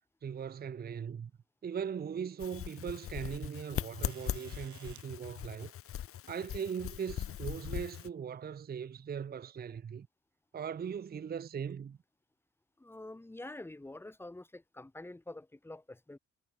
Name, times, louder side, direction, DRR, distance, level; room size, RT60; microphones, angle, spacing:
voice 1, 0.2-1.3 1.6-5.7 6.3-10.1 10.5-12.0, right 7 dB, 30° right, 0.7 m, -39 dB
sound 1, 2.4-8.1, left 10 dB, 50° left, 0.7 m, -40 dB
sound 2, 4.0-5.1 6.5-6.6 7.9-8.2 9.1-9.2, right 11 dB, 70° right, 3.3 m, -56 dB
voice 2, 12.8-16.2, left 2 dB, 10° left, 1.0 m, -47 dB
cardioid pair, 90°, 30 cm